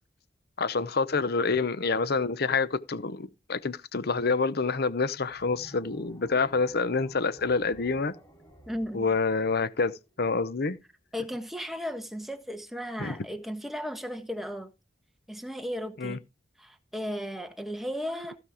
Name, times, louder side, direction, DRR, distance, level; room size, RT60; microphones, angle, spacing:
voice 1, 0.6-8.1 8.9-10.8 13.0-13.2 16.0-16.2, left 4 dB, 60° left, 0.8 m, -27 dB
sound 1, 5.3-10.5, right 1 dB, 20° left, 3.8 m, -53 dB
voice 2, 8.7-9.1 11.1-14.7 15.3-16.2 16.6-18.4, equal, ahead, 1.4 m, -35 dB
15.5 x 5.4 x 4.9 m
head